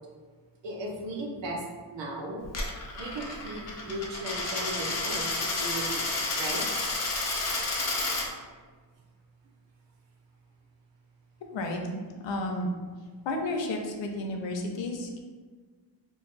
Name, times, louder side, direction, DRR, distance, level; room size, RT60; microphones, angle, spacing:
voice 1, 0.6-1.6 1.9-2.5 3.0-6.1 6.4-6.7, right 1 dB, 70° right, 0 dB, 0.8 m, -36 dB
Coin (dropping), 2.4-8.3, left 2 dB, 35° left, 0.6 m, -31 dB
voice 2, 12.2-12.7 13.2-15.2, left 2 dB, 75° left, 2 dB, 0.6 m, -32 dB
2.6 x 2.3 x 3.8 m, 1.5 s
cardioid pair, 100°, 45 cm